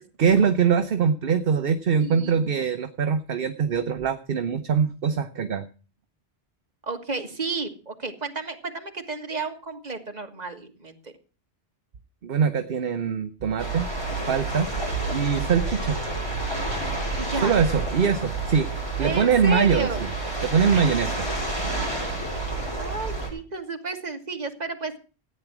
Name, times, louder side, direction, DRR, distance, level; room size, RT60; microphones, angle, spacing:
voice 1, 0.2-5.6 12.2-13.9 14.3-16.0 17.4-18.7 19.0-20.1 20.4-21.1, right 6 dB, 60° right, 9 dB, 1.0 m, -23 dB
voice 2, 1.9-2.5 6.8-11.1 17.2-17.5 19.0-20.0 20.7-20.9 22.8-24.9, right 3 dB, 40° right, 5 dB, 1.8 m, -32 dB
sound 1, 13.6-23.3, right 3 dB, 25° left, 5.6 m, -29 dB
14.0 x 9.5 x 6.0 m, 0.37 s
omnidirectional pair, 1.1 m